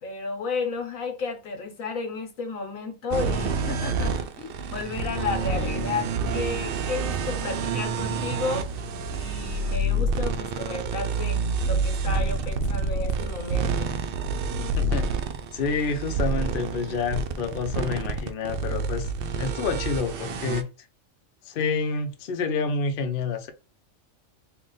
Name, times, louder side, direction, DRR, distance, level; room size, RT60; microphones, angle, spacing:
voice 1, 0.0-8.7 9.1-13.9, left 4 dB, 85° left, 1.4 m, -33 dB
sound 1, 3.1-20.6, right 3 dB, 60° right, 0.6 m, -28 dB
voice 2, 14.8-15.1 15.5-20.7 21.4-23.5, left 5 dB, 55° left, 0.7 m, -28 dB
3.3 x 2.5 x 3.8 m
omnidirectional pair, 1.4 m